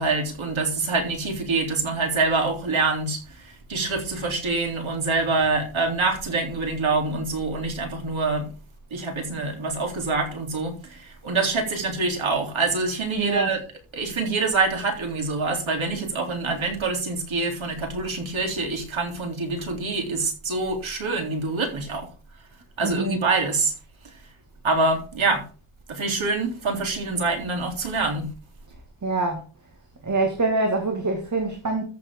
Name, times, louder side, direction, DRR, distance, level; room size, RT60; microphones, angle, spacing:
voice 1, 0.0-8.5 8.9-13.6 13.9-22.1 22.8-23.7 24.6-25.4 25.9-28.3, right 3 dB, 70° right, 3.6 m, -25 dB
voice 2, 13.2-13.5 22.8-23.2 29.0-29.4 30.0-31.8, right 3 dB, 35° right, 2.2 m, -25 dB
14.0 x 7.7 x 3.7 m
wide cardioid pair, 150°, 49 cm